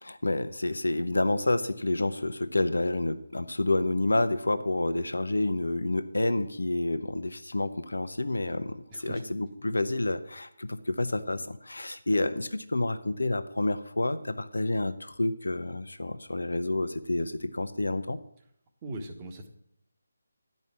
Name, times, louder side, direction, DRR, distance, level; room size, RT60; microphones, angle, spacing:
voice 1, 0.0-18.2, left 2 dB, 75° left, 11 dB, 0.9 m, -29 dB
voice 2, 8.9-9.2 18.8-19.5, right 1 dB, 25° right, 3 dB, 1.4 m, -39 dB
11.0 x 5.4 x 7.3 m, 0.72 s
figure-of-eight pair, 155°, 0 cm